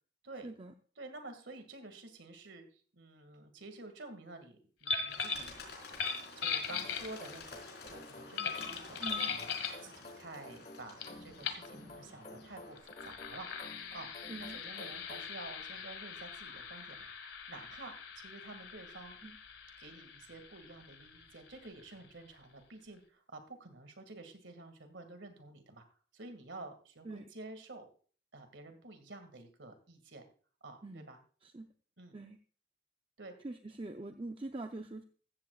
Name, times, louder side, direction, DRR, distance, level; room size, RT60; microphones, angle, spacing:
voice 1, 0.4-0.7 9.0-9.3 14.3-14.6 19.2-19.4 27.0-27.2 30.8-31.1 31.4-31.7 32.1-32.4 33.4-35.0, right 2 dB, 30° right, 6 dB, 0.6 m, -44 dB
voice 2, 1.0-5.6 6.4-9.5 9.8-14.1 14.4-17.1 17.5-19.2 19.8-25.9 26.1-27.9 28.3-30.2 30.6-31.2 32.0-32.1 33.2-33.3, right 2 dB, 85° right, 7 dB, 2.1 m, -50 dB
sound 1, 4.8-5.5 5.9-7.4 8.4-9.8 11.0-11.1 11.4-11.7 12.7-22.0, left 5 dB, 85° left, 1.8 m, -40 dB
Bird, 5.1-12.8, left 3 dB, 60° left, 4.8 m, -51 dB
sound 2, 6.7-15.4, left 2 dB, 35° left, 1.7 m, -53 dB
15.0 x 14.5 x 2.4 m, 0.42 s
head